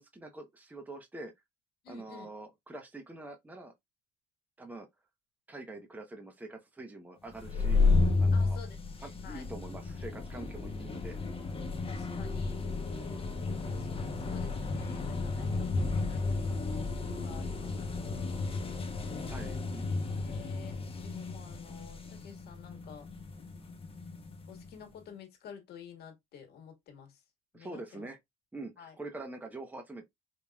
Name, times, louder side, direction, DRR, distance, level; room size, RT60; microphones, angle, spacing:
voice 1, 0.0-1.3 1.9-3.7 4.6-4.9 5.5-7.9 8.2-8.6 9.0-11.2 13.0-13.3 19.3-20.1 27.5-28.2 28.5-30.0, right 2 dB, 10° right, 0.9 m, -45 dB
voice 2, 1.8-2.3 8.3-9.4 10.3-10.8 11.6-12.6 13.7-18.9 20.1-23.1 24.5-27.2 27.5-28.1 28.8-28.9, left 7 dB, 70° left, 1.8 m, -51 dB
sound 1, 7.3-24.7, left 3 dB, 35° left, 1.0 m, -32 dB
5.2 x 2.8 x 2.4 m
cardioid pair, 110°, 17 cm